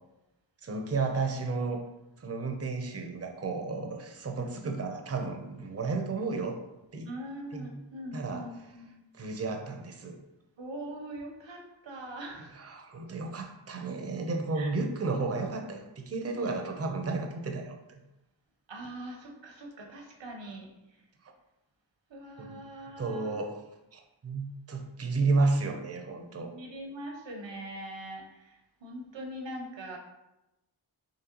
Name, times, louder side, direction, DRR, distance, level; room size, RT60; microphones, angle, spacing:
voice 1, 0.6-1.8 2.2-6.6 6.9-7.1 7.5-7.7 8.1-8.4 9.1-10.2 12.6-18.0 22.4-22.6 23.0-23.6 23.9-26.5, right 3 dB, 35° right, 3 dB, 0.6 m, -32 dB
voice 2, 7.0-8.9 10.6-12.7 14.5-14.8 18.7-21.0 22.1-23.5 26.3-30.0, right 1 dB, 70° right, 1 dB, 0.9 m, -42 dB
3.9 x 3.2 x 2.9 m, 0.95 s
cardioid pair, 45°, 46 cm